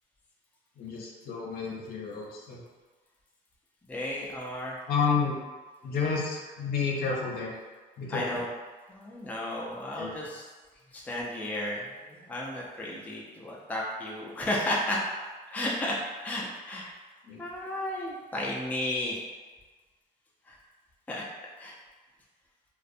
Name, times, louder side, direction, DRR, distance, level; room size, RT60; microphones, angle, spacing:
voice 1, 0.8-2.6 4.9-5.4 5.8-7.5 8.0-8.4 10.0-10.1 17.3-17.4, left 5 dB, 65° left, -3 dB, 0.6 m, -30 dB
voice 2, 3.9-4.8 8.1-8.5 8.9-10.5 10.9-15.0 15.5-16.9 17.4-19.2 20.5-20.6 21.1-21.2 21.6-21.8, left 1 dB, 10° left, -4 dB, 0.4 m, -33 dB
2.4 x 2.1 x 2.6 m, 1.3 s
cardioid pair, 110°, 17 cm